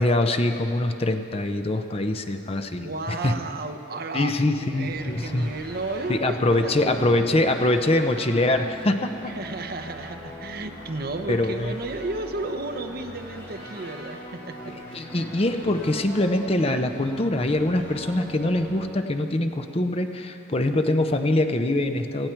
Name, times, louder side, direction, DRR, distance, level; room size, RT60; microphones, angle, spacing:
voice 1, 0.0-3.4 4.1-5.5 6.1-9.3 11.3-11.8 14.7-22.3, left 1 dB, 30° left, 7 dB, 0.7 m, -24 dB
voice 2, 2.7-7.3 9.2-14.7 15.1-15.3, right 2 dB, 50° right, 7 dB, 0.9 m, -33 dB
sound 1, 4.8-18.8, equal, 50° left, 4.2 m, -41 dB
18.5 x 14.5 x 4.6 m, 2.8 s
head